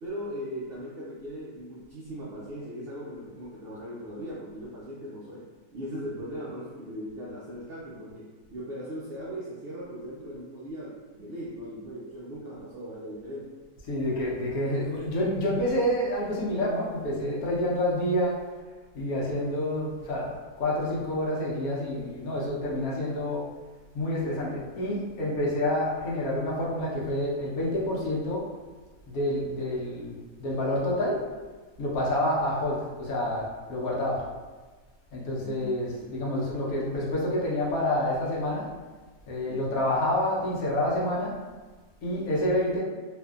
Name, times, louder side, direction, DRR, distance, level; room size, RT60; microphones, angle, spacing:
voice 1, 0.0-5.5 5.7-13.5 35.4-36.2 39.5-39.8, equal, 75° right, -7 dB, 0.5 m, -39 dB
voice 2, 13.9-18.4 18.9-23.4 23.9-28.4 29.1-31.2 31.8-34.2 35.1-38.7 39.3-41.3 42.0-42.8, left 1 dB, 75° left, -5 dB, 1.2 m, -28 dB
2.7 x 2.5 x 2.3 m, 1.3 s
omnidirectional pair, 1.6 m